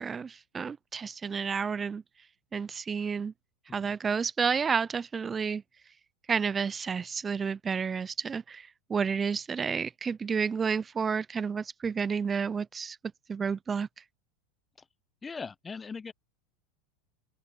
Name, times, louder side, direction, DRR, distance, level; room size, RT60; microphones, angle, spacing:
voice 1, 0.0-2.0 2.5-3.3 3.7-5.6 6.3-13.0 13.3-13.9, right 6 dB, 25° right, 0.4 m, -30 dB
voice 2, 15.2-16.1, left 5 dB, 20° left, 0.9 m, -39 dB
open air
hypercardioid pair, 105°, 0 cm